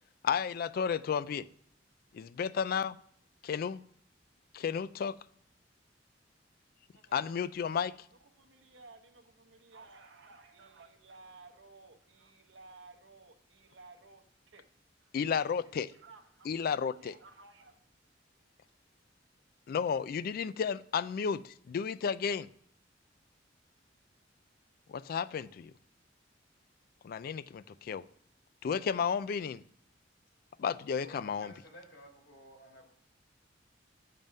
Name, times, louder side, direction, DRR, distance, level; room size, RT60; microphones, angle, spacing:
voice 1, 0.2-1.5 2.1-3.0 3.4-3.8 4.5-5.1 7.1-7.9 15.1-15.9 16.4-17.1 19.7-22.5 24.9-25.7 27.0-28.0 28.6-29.6 30.6-31.5, left 6 dB, 50° left, 17 dB, 0.3 m, -32 dB
voice 2, 6.9-7.3 8.3-14.6 15.0-15.2 15.6-16.5 16.9-17.8, right 3 dB, 85° right, 5 dB, 0.9 m, -56 dB
voice 3, 31.0-32.9, equal, 80° left, 0 dB, 3.2 m, -53 dB
7.4 x 5.4 x 5.2 m, 0.65 s
head